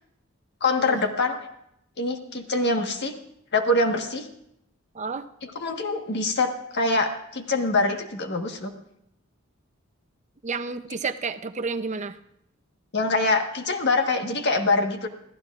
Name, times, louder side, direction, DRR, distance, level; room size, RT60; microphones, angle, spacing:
voice 1, 0.6-1.4 2.0-3.1 3.5-4.3 5.4-8.7 12.9-15.1, left 2 dB, 55° left, 4 dB, 1.5 m, -24 dB
voice 2, 4.9-5.3 10.4-12.2, right 4 dB, 35° right, 10 dB, 0.6 m, -30 dB
26.5 x 15.0 x 2.5 m, 0.77 s
head